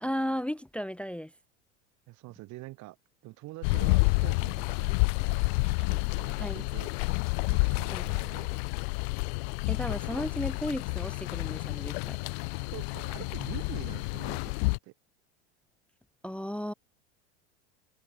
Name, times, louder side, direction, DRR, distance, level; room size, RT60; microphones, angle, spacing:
voice 1, 0.0-1.3 6.4-6.6 7.9-8.0 9.7-12.2 16.2-16.7, equal, 5° left, 0.6 m, -34 dB
voice 2, 2.1-3.0 3.2-6.9 7.5-8.7 12.7-14.5 14.8-14.9, right 20 dB, 55° right, 5.7 m, -46 dB
sound 1, 3.6-14.8, left 32 dB, 65° left, 0.7 m, -29 dB
open air
hypercardioid pair, 95°, 35 cm